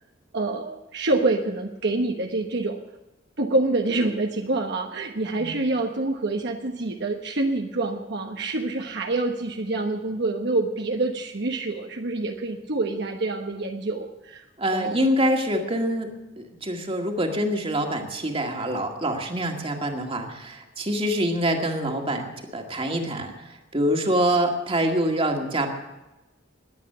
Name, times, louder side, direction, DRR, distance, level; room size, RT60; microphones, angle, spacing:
voice 1, 0.3-2.8 3.4-14.4 14.7-15.0, right 2 dB, 65° right, 3 dB, 1.1 m, -26 dB
voice 2, 14.6-16.1 16.4-25.7, right 1 dB, 30° right, 3 dB, 2.0 m, -25 dB
20.5 x 8.4 x 6.8 m, 1.0 s
head